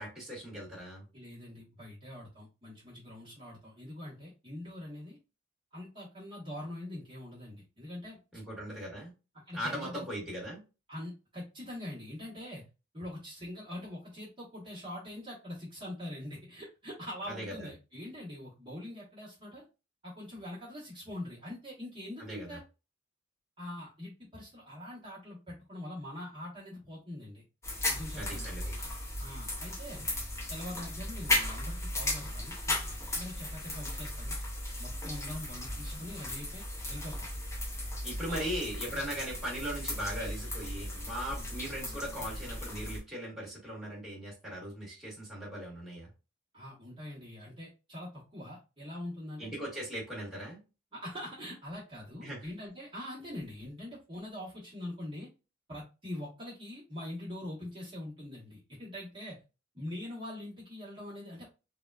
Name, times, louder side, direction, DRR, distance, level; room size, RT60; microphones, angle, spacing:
voice 1, 0.0-1.0 8.3-9.1 9.5-10.6 17.3-17.7 22.2-22.6 28.1-28.6 38.0-46.1 49.4-50.6 52.2-52.5, equal, ahead, -6 dB, 1.3 m, -39 dB
voice 2, 1.1-5.2 5.7-8.2 9.5-10.0 10.9-12.6 12.9-19.6 20.0-22.6 23.6-27.4 27.9-28.5 29.2-30.0 30.5-32.5 32.9-34.4 34.8-37.3 38.3-38.5 41.3-41.5 46.5-49.5 50.9-55.3 55.7-59.4 59.7-61.5, left 1 dB, 25° right, -8 dB, 1.0 m, -43 dB
sound 1, 27.6-43.0, left 1 dB, 15° left, 0.6 m, -36 dB
3.6 x 2.2 x 2.3 m, 0.30 s
head